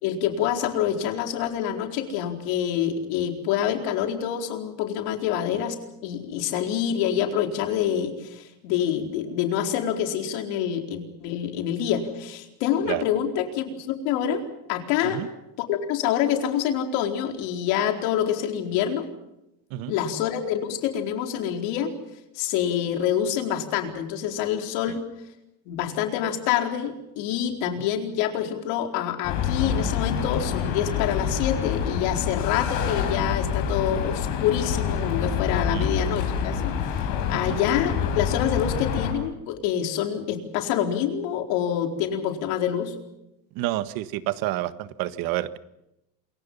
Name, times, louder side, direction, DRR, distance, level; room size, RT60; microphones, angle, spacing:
voice 1, 0.0-14.4 14.7-15.2 15.6-19.1 19.9-21.9 22.4-25.0 25.7-36.7 37.3-43.0, left 9 dB, 85° left, 4 dB, 4.4 m, -26 dB
sound 1, 29.2-39.1, left 7 dB, 65° left, 7.2 m, -27 dB
voice 2, 43.5-45.6, right 15 dB, 65° right, 12 dB, 1.6 m, -29 dB
27.5 x 23.5 x 5.6 m, 0.87 s
cardioid pair, 170°, 37 cm